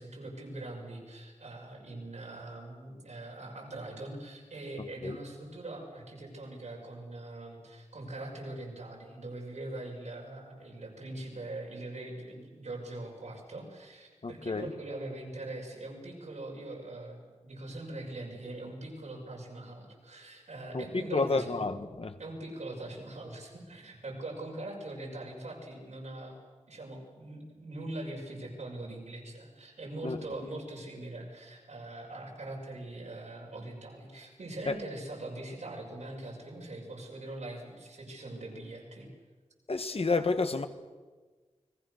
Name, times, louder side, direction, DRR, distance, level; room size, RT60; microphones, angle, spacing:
voice 1, 0.0-21.5 22.2-26.4 26.7-39.1, right 2 dB, 85° right, 6.4 m, -42 dB
voice 2, 14.2-14.7 20.7-22.2 30.0-30.2 34.6-34.8 39.7-40.7, left 3 dB, 60° left, 1.6 m, -30 dB
29.5 x 20.5 x 6.6 m
wide cardioid pair, 75°, 12 cm